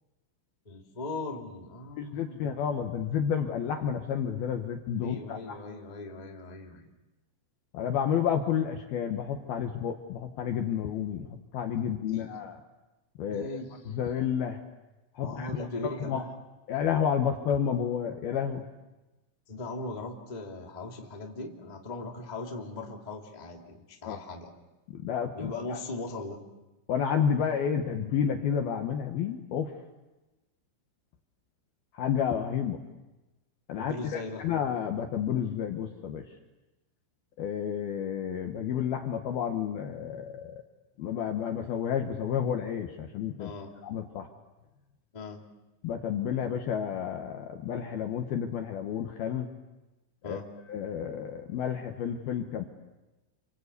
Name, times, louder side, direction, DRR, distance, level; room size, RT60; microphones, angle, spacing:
voice 1, 0.6-2.6 5.0-6.9 12.1-12.4 13.3-13.7 15.2-16.3 19.5-24.5 25.3-26.4 33.8-34.5 43.4-43.7 45.1-45.4 50.2-50.5, left 2 dB, 20° left, 0 dB, 1.0 m, -39 dB
voice 2, 2.0-5.6 7.7-12.6 13.2-13.6 13.9-14.6 15.1-15.5 15.8-16.2 16.7-18.6 24.0-24.2 24.9-25.8 26.9-29.7 31.9-32.8 33.7-36.2 37.4-40.6 41.0-43.5 43.8-44.3 45.8-49.5 50.3-50.4 50.7-52.6, left 8 dB, 70° left, 4 dB, 2.4 m, -30 dB
29.0 x 24.5 x 8.3 m, 1.1 s
omnidirectional pair, 6.0 m